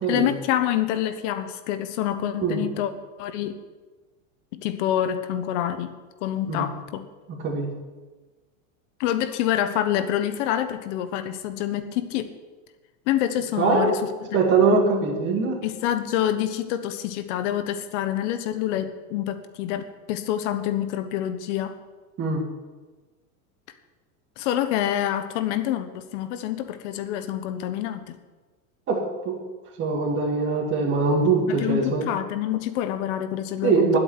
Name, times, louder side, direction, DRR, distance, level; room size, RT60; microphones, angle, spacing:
voice 1, 0.1-2.9 3.2-3.6 4.5-5.9 6.2-7.1 9.0-12.3 13.1-14.0 14.3-14.4 15.6-21.8 24.4-28.2 31.5-34.0, left 11 dB, 55° left, 10 dB, 1.2 m, -27 dB
voice 2, 13.6-13.9 14.3-15.6 22.2-22.4 28.9-29.4 29.8-32.0 33.6-34.0, right 4 dB, 25° right, -2 dB, 2.4 m, -22 dB
9.9 x 8.4 x 9.7 m, 1.3 s
supercardioid pair, 150°, 42 cm